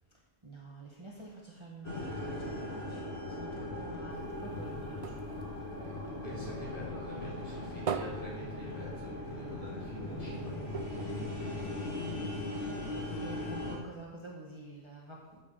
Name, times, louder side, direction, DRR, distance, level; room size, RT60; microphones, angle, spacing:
voice 1, 0.4-5.3 10.0-10.6 13.2-15.4, right 2 dB, 30° right, -3 dB, 1.3 m, -49 dB
sound 1, 1.8-13.8, left 1 dB, 80° left, 2.2 m, -39 dB
sound 2, 4.1-6.8 7.1-9.4 9.7-9.8 10.1-10.2 10.7-12.2 12.8-12.9, right 7 dB, 45° right, 0.5 m, -42 dB
voice 2, 5.8-10.6, left 1 dB, 35° left, -7 dB, 4.1 m, -46 dB
8.3 x 6.9 x 6.2 m, 1.2 s
omnidirectional pair, 1.1 m